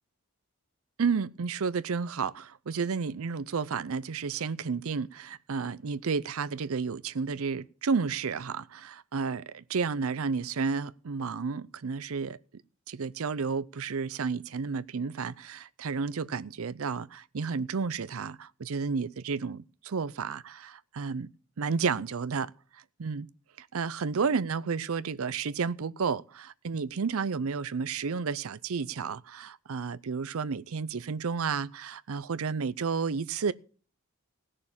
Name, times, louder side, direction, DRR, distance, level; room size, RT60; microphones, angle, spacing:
voice 1, 1.0-12.4 12.9-21.3 21.6-22.5 23.0-23.3 23.6-33.5, right 5 dB, 70° right, 0.5 m, -31 dB
16.5 x 6.5 x 7.2 m
head